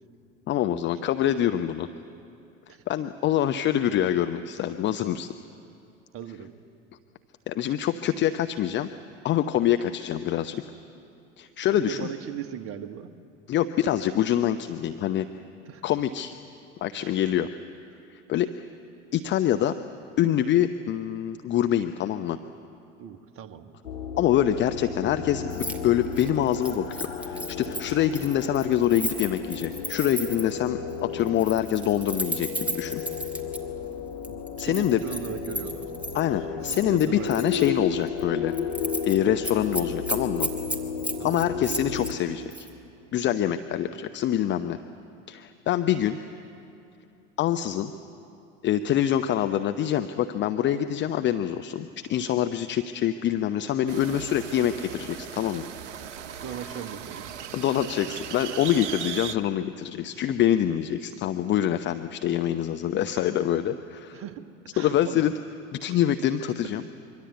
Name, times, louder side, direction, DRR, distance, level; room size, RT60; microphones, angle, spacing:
voice 1, 0.5-1.9 2.9-5.3 7.5-8.9 9.2-10.6 11.4-12.1 13.5-15.3 15.8-16.3 16.8-17.5 18.1-18.5 19.1-19.7 20.2-22.4 24.2-33.0 34.6-35.0 36.1-38.5 39.0-40.5 41.2-42.7 43.1-44.8 45.3-46.2 47.4-47.9 48.6-55.7 57.5-64.2 64.8-65.3 65.8-66.8, left 11 dB, 30° left, 9 dB, 0.8 m, -25 dB
voice 2, 6.1-6.5 11.7-13.1 15.7-15.8 17.0-17.1 23.0-23.7 34.2-35.9 36.6-37.8 41.2-41.4 56.4-57.3 64.1-64.4 64.7-65.3, right 8 dB, 35° right, 9 dB, 1.6 m, -38 dB
sound 1, 23.8-42.1, left 6 dB, 70° left, 3.8 m, -34 dB
Keys jangling, 25.5-25.8 26.1-30.6 31.3-33.6 34.2-36.2 36.6-37.7 38.1-38.2 38.5-39.2 39.4-42.1 42.5-42.7, right 1 dB, 5° right, 2.6 m, -34 dB
sound 2, 53.9-59.4, right 9 dB, 65° right, 1.1 m, -38 dB
25.0 x 24.0 x 8.1 m, 2.7 s
figure-of-eight pair, 75°, 38 cm